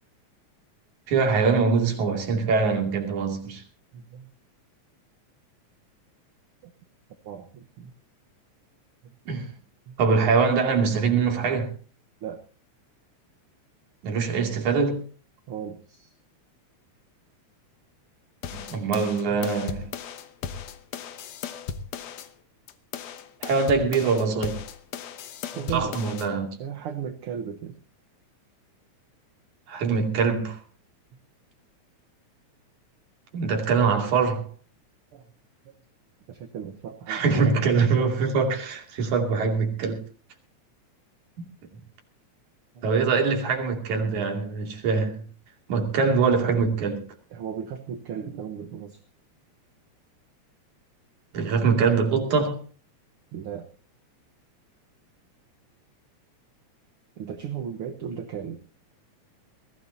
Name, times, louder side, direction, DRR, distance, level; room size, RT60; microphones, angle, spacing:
voice 1, 1.1-3.6 9.3-9.5 10.0-11.7 14.0-15.0 18.5-19.9 23.4-24.6 25.7-26.5 29.7-30.6 33.3-34.5 37.1-40.0 42.8-45.2 45.7-47.0 51.3-52.6, right 5 dB, 80° right, 4.0 m, -23 dB
voice 2, 3.9-4.3 6.6-6.7 7.2-7.9 9.9-10.0 12.2-12.4 15.5-16.1 19.3-19.4 25.5-26.0 26.6-27.8 35.1-35.2 35.6-35.7 36.3-37.6 42.7-42.9 47.3-49.0 53.3-53.7 57.2-58.6, right 8 dB, 60° right, 1.6 m, -36 dB
sound 1, 18.4-22.3 22.7-26.3, left 7 dB, 65° left, 2.1 m, -36 dB
21.5 x 15.5 x 2.8 m
omnidirectional pair, 3.4 m